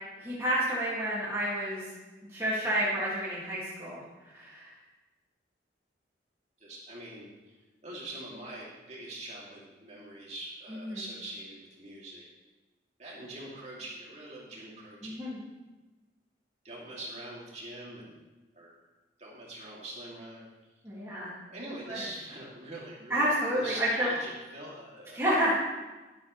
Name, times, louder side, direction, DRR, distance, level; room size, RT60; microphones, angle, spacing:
voice 1, 0.2-1.8 2.3-4.0 4.3-4.7 10.7-11.0 15.0-15.4 20.8-21.3 21.9-22.0 23.1-24.1 25.1-25.5, right 1 dB, 15° right, -8 dB, 2.1 m, -29 dB
voice 2, 6.6-7.6 7.8-12.2 13.0-15.3 16.6-18.2 18.5-18.7 19.2-20.4 21.5-25.3, right 1 dB, 35° right, -5 dB, 2.6 m, -43 dB
11.5 x 11.0 x 3.2 m, 1.2 s
head